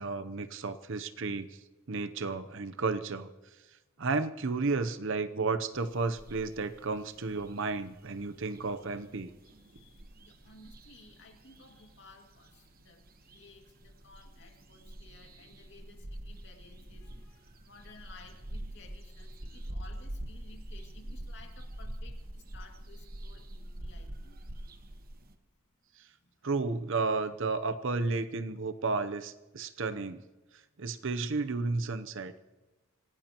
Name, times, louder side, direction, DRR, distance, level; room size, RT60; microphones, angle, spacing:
voice 1, 0.0-1.5 1.9-3.3 4.0-9.3 26.4-30.2 30.8-32.3, right 3 dB, 60° right, 11 dB, 0.8 m, -32 dB
sound 1, 5.7-25.3, right 1 dB, 45° right, 1.2 m, -46 dB
voice 2, 9.4-24.4 26.2-26.3 27.7-27.8, left 3 dB, 55° left, 3 dB, 2.3 m, -56 dB
26.5 x 17.5 x 3.0 m, 1.1 s
head